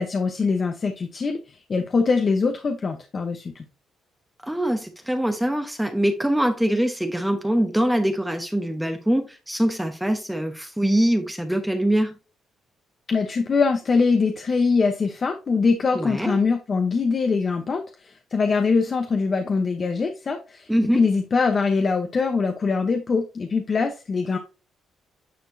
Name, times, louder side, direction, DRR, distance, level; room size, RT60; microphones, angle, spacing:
voice 1, 0.0-3.6 13.1-24.4, left 4 dB, 40° left, 0.9 m, -23 dB
voice 2, 4.4-12.1 15.9-16.4 20.7-21.0, right 1 dB, 5° right, 1.0 m, -23 dB
9.4 x 4.3 x 2.7 m
cardioid pair, 90°, 0 cm